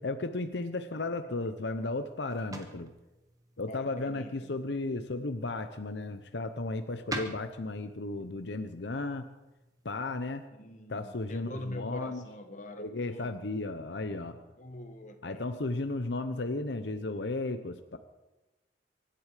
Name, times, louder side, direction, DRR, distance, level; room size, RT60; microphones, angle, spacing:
voice 1, 0.0-2.9 3.6-9.3 9.8-10.4 10.9-12.2 12.8-14.4 15.2-18.0, left 2 dB, 80° left, 8 dB, 0.9 m, -34 dB
sound 1, 1.3-10.5, right 1 dB, 20° right, 1.5 m, -47 dB
voice 2, 3.7-4.6 10.5-13.3 14.6-15.4, left 1 dB, 45° left, 6 dB, 1.6 m, -43 dB
24.0 x 11.5 x 5.0 m, 1.1 s
head